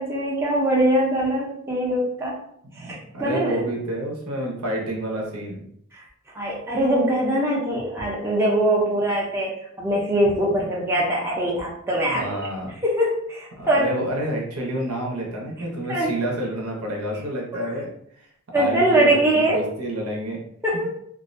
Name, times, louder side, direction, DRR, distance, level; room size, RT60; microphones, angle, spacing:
voice 1, 0.0-2.4 2.8-3.6 6.3-9.5 9.8-12.3 12.8-13.9 15.9-16.1 17.5-17.6 18.5-19.6 20.6-20.9, right 1 dB, 10° right, -5 dB, 0.5 m, -22 dB
voice 2, 2.8-5.6 12.1-12.7 13.6-17.9 18.2-18.3 18.5-20.4 20.7-20.9, right 1 dB, 90° right, -1 dB, 0.7 m, -29 dB
2.4 x 2.1 x 2.5 m, 0.70 s
head